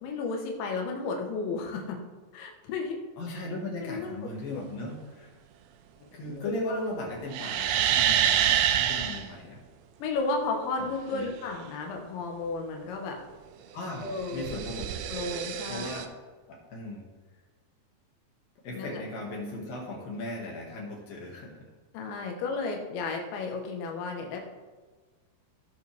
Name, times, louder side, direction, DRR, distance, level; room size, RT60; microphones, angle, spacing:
voice 1, 0.0-2.0 2.3-3.0 3.3-3.4 3.8-4.1 4.5-4.6 6.3-6.8 8.4-8.6 10.0-13.2 14.0-14.5 15.1-15.9 18.7-19.0 21.9-24.4, left 3 dB, 85° left, 2 dB, 3.6 m, -33 dB
voice 2, 3.2-5.3 6.1-9.6 11.1-11.3 13.7-14.9 15.7-16.1 16.5-17.1 18.6-21.7, left 2 dB, 60° left, -2 dB, 3.4 m, -37 dB
sound 1, 7.3-9.2 14.0-16.0, right 10 dB, 85° right, 2.3 m, -26 dB
17.0 x 6.8 x 3.5 m, 1.4 s
omnidirectional pair, 5.1 m